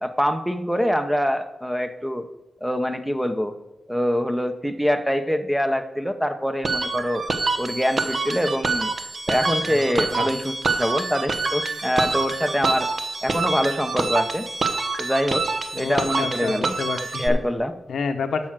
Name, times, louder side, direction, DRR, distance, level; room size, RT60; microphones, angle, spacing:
voice 1, 0.0-2.3 2.6-3.5 3.9-7.3 7.6-8.9 9.3-12.9 13.2-14.5 15.0-15.5 15.7-16.7 17.2-17.8, equal, ahead, 8 dB, 0.8 m, -24 dB
sound 1, 6.6-17.3, right 3 dB, 50° right, 0.9 m, -26 dB
voice 2, 15.7-17.4 17.9-18.5, left 5 dB, 85° left, 7 dB, 0.8 m, -29 dB
7.0 x 6.1 x 7.4 m, 0.99 s
wide cardioid pair, 95°, 0 cm